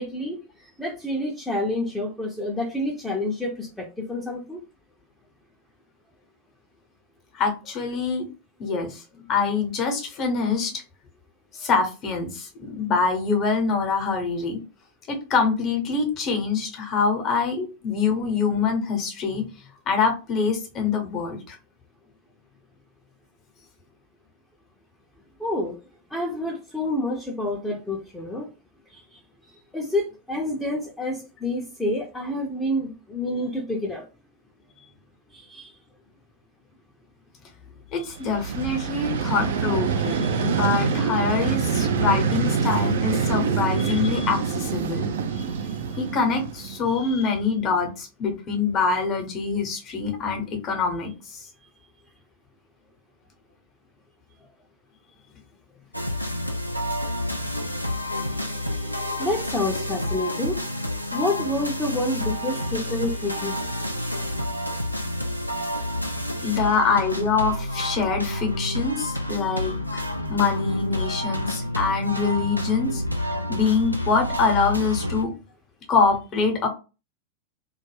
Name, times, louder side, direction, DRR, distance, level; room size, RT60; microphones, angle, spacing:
voice 1, 0.0-4.6 25.4-25.8 26.1-28.5 28.9-29.2 29.5-34.0 35.3-35.8 57.6-58.0 58.3-60.6 61.1-63.6 66.4-66.5 69.4-69.7, left 1 dB, 5° left, -3 dB, 0.6 m, -29 dB
voice 2, 7.3-8.3 8.6-10.8 11.5-14.6 15.1-19.5 19.9-21.6 37.9-45.1 46.0-51.5 66.4-70.0 70.3-73.0 73.5-75.3 75.9-76.7, left 5 dB, 35° left, 3 dB, 0.8 m, -25 dB
Vehicle, 38.2-47.1, right 6 dB, 60° right, 0.3 m, -25 dB
sound 1, 55.9-75.2, left 1 dB, 90° left, 0.3 m, -29 dB
2.3 x 2.1 x 3.2 m, 0.32 s
figure-of-eight pair, 90°, 0 cm